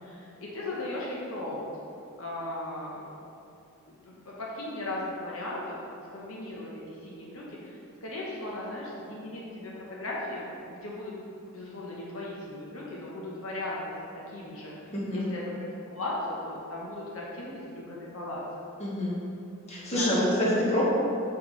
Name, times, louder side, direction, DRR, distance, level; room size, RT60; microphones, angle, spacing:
voice 1, 0.0-1.6 2.2-3.2 3.9-5.8 6.1-11.1 11.5-13.9 14.3-15.6 15.9-18.4 19.9-20.6, left 1 dB, 70° left, -5 dB, 0.9 m, -37 dB
voice 2, 14.9-15.3 18.8-19.1 19.7-20.8, left 1 dB, 30° left, -7 dB, 1.4 m, -26 dB
6.1 x 5.8 x 3.2 m, 2.6 s
head